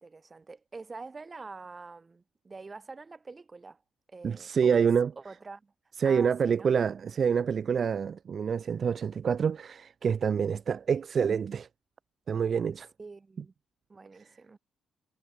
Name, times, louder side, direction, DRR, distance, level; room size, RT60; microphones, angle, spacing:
voice 1, 0.0-3.8 4.1-4.9 5.2-5.7 6.1-6.7 13.0-13.5 13.9-14.6, right 4 dB, 30° right, 2.1 m, -46 dB
voice 2, 4.2-5.1 6.0-11.7 12.3-12.9, right 7 dB, 50° right, 0.4 m, -27 dB
cardioid pair, 90°, 0 cm